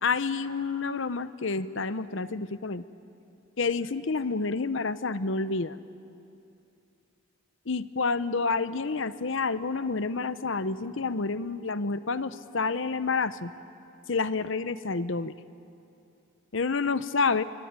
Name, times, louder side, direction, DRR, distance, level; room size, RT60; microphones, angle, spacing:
voice 1, 0.0-2.8 3.6-5.8 7.7-13.5 14.1-15.3 16.5-17.4, left 4 dB, 65° left, 14 dB, 0.8 m, -29 dB
24.5 x 23.5 x 9.6 m, 2.7 s
head